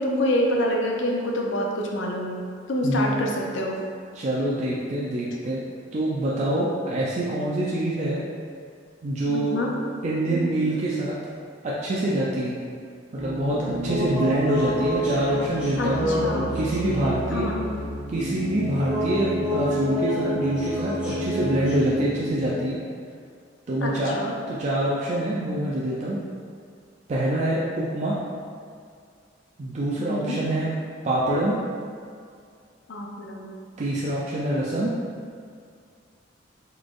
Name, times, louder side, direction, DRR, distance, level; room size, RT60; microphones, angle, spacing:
voice 1, 0.0-2.4 2.7-3.8 9.3-9.7 10.3-10.4 15.8-16.5 17.3-17.7 23.8-24.3 30.0-30.4 32.9-33.6, left 1 dB, 75° left, 0 dB, 0.5 m, -27 dB
voice 2, 2.8-3.2 4.1-5.6 5.9-8.2 9.0-9.6 10.0-11.1 11.6-12.6 13.1-17.5 18.1-22.8 23.7-24.2 24.5-26.2 27.1-28.2 29.6-30.7 31.0-31.6 33.8-34.9, right 1 dB, 40° right, -6 dB, 0.4 m, -25 dB
sound 1, 13.2-22.5, left 1 dB, 5° right, 0.8 m, -28 dB
4.0 x 3.2 x 2.4 m, 2.2 s
head